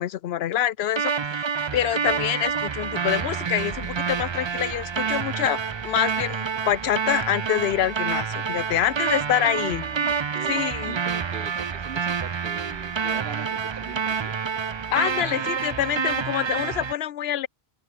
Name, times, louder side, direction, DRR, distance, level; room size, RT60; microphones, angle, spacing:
voice 1, 0.0-1.4 1.7-9.8 10.5-11.0 14.9-17.5, left 11 dB, 70° left, 0.8 m, -26 dB
sound 1, 1.0-16.9, right 6 dB, 40° right, 0.4 m, -28 dB
voice 2, 9.5-14.3, right 8 dB, 60° right, 1.1 m, -40 dB
open air
omnidirectional pair, 1.1 m